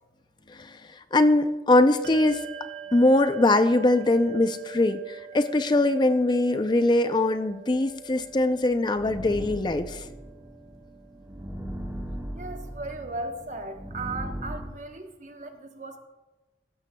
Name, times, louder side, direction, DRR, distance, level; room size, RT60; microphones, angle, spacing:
voice 1, 0.5-0.8 1.1-2.4 2.9-10.0, left 2 dB, 25° left, 10 dB, 0.4 m, -22 dB
Bell, 2.0-12.0, right 8 dB, 70° right, 2.1 m, -45 dB
sound 1, 8.2-14.6, equal, 15° right, 1.4 m, -38 dB
voice 2, 12.3-16.0, right 2 dB, 45° right, 5 dB, 1.0 m, -37 dB
16.0 x 12.5 x 2.2 m, 1.2 s
head